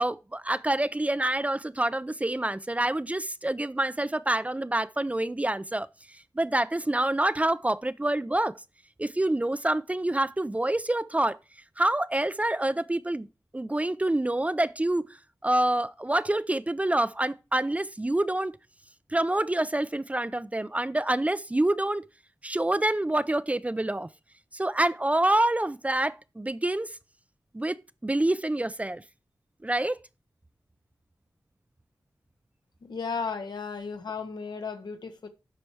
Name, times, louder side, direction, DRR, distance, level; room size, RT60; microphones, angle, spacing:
voice 1, 0.0-5.9 6.4-8.5 9.0-11.4 11.8-13.3 13.5-15.2 15.4-18.5 19.1-22.0 22.4-24.1 24.5-27.0 27.5-29.0 29.6-30.0, right 1 dB, 20° right, 0.4 m, -27 dB
voice 2, 32.8-35.3, left 5 dB, 75° left, 1.2 m, -34 dB
11.5 x 4.4 x 4.6 m
wide cardioid pair, 65°, 7 cm